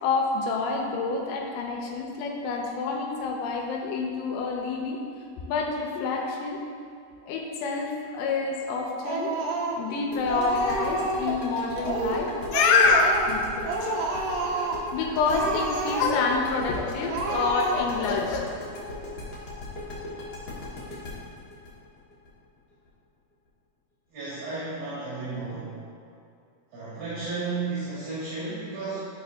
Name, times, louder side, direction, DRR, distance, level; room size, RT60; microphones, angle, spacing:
voice 1, 0.0-5.0 5.5-6.6 7.3-13.4 13.8-13.9 14.9-18.4, left 4 dB, 85° left, 1 dB, 2.9 m, -27 dB
Speech, 9.0-10.0 10.3-11.4 11.8-12.3 12.5-13.4 13.6-14.8 15.2-16.3 16.7-16.8 17.1-18.1, right 2 dB, 85° right, 2.0 m, -29 dB
sound 1, 10.1-22.9, left 1 dB, 60° left, 1.8 m, -38 dB
voice 2, 24.1-25.7 26.7-29.1, right 3 dB, 60° right, -11 dB, 3.3 m, -33 dB
12.0 x 5.7 x 2.6 m, 2.4 s
omnidirectional pair, 5.1 m